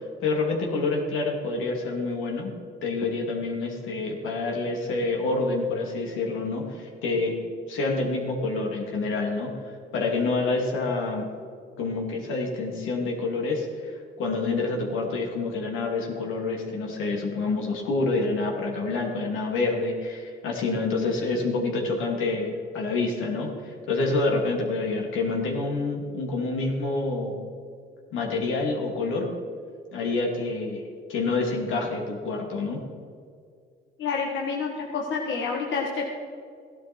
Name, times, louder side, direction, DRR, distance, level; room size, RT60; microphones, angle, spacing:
voice 1, 0.2-2.5 2.8-7.4 7.7-9.6 9.9-11.3 11.8-13.9 14.2-27.4 28.1-29.3 29.9-30.8 31.1-32.8, left 3 dB, 90° left, 0 dB, 2.7 m, -27 dB
voice 2, 34.0-36.0, left 5 dB, 70° left, 0 dB, 1.6 m, -28 dB
15.0 x 12.0 x 4.5 m, 2.3 s
cardioid pair, 90°, 20 cm